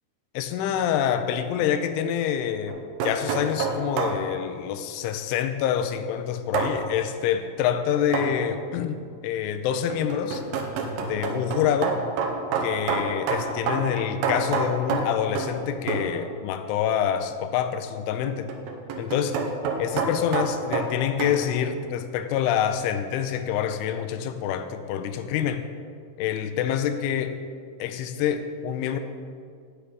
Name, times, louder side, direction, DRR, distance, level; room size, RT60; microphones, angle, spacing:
voice 1, 0.3-10.4 11.0-12.0 12.6-18.5 19.0-19.4 19.8-25.7 26.2-27.4 27.8-29.0, left 9 dB, 90° left, 9 dB, 3.1 m, -26 dB
sound 1, 2.7-4.2 6.5-6.8 8.1-8.4 9.7-15.6 15.9-16.1 18.3-21.4, right 4 dB, 90° right, 2.0 m, -28 dB
9.2 x 8.2 x 5.1 m, 2.2 s
omnidirectional pair, 5.5 m